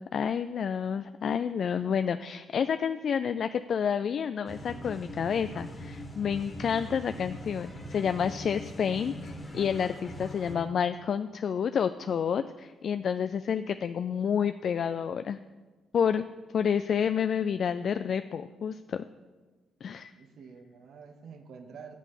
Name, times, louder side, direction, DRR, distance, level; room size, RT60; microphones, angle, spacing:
voice 1, 0.0-15.4 15.9-16.2 16.5-19.0 19.8-20.1, left 7 dB, 55° left, 11 dB, 0.3 m, -29 dB
sound 1, 4.5-10.6, equal, 20° left, 1.9 m, -42 dB
voice 2, 20.1-22.0, right 5 dB, 70° right, 7 dB, 1.1 m, -48 dB
7.7 x 7.3 x 6.8 m, 1.3 s
cardioid pair, 90°, 0 cm